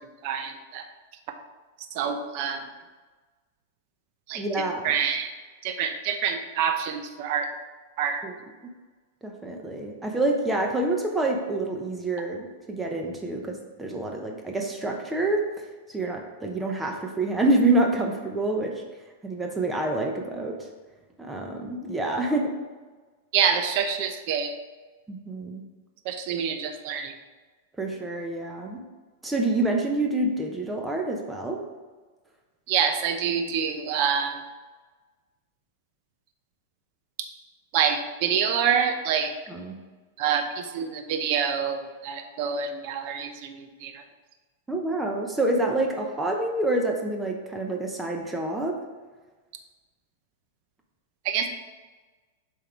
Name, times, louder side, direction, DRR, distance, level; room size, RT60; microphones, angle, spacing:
voice 1, 0.2-0.8 1.9-2.6 4.3-4.4 4.8-5.3 5.6-7.5 8.0-8.2 23.3-24.5 26.0-27.1 32.7-34.4 37.7-39.4 40.2-44.0 51.2-51.5, right 7 dB, 50° right, 6 dB, 0.7 m, -26 dB
voice 2, 4.3-4.9 8.2-8.3 9.2-15.4 15.9-18.7 19.2-20.6 21.2-22.5 25.1-25.6 27.8-28.8 29.2-31.6 39.5-39.7 44.7-48.8, right 2 dB, 10° right, 1 dB, 0.8 m, -27 dB
6.9 x 3.8 x 4.6 m, 1.3 s
supercardioid pair, 145°, 0 cm